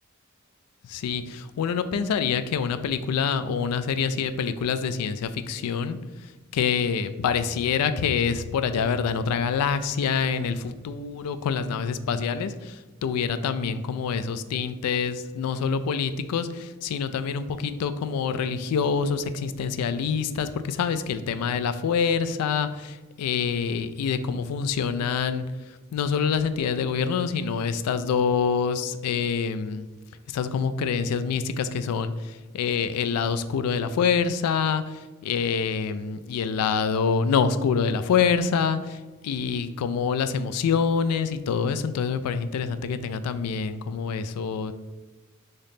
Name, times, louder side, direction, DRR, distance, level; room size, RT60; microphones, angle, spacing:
voice 1, 0.9-6.0 6.5-25.4 25.9-29.9 30.3-44.7, left 6 dB, 90° left, 11 dB, 0.3 m, -26 dB
3.8 x 2.7 x 3.5 m, 1.2 s
head